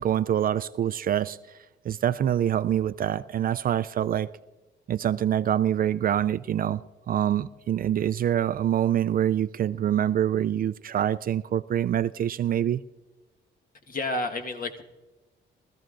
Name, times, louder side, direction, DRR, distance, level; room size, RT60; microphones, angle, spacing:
voice 1, 0.0-1.4 1.8-4.3 4.9-6.8 7.1-12.8, right 10 dB, 45° right, 0.4 m, -25 dB
voice 2, 13.9-14.8, left 2 dB, 45° left, 1.5 m, -30 dB
23.0 x 14.0 x 2.5 m
cardioid pair, 90°, 20 cm